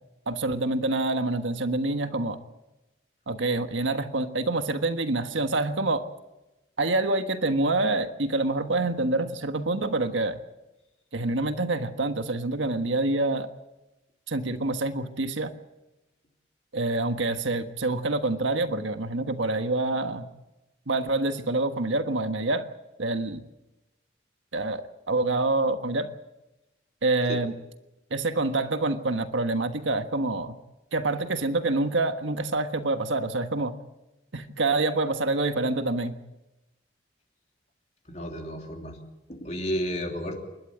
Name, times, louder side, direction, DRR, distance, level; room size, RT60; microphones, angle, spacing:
voice 1, 0.3-2.4 3.3-6.0 6.8-10.4 11.1-13.5 14.3-15.5 16.7-20.3 20.9-22.7 23.0-23.4 24.5-26.1 27.0-27.5 28.1-30.6 30.9-33.7 34.3-36.1, right 2 dB, 85° right, 8 dB, 1.4 m, -26 dB
voice 2, 38.1-39.0 39.3-40.4, equal, 35° left, 2 dB, 3.0 m, -32 dB
28.5 x 12.5 x 8.5 m, 1.0 s
head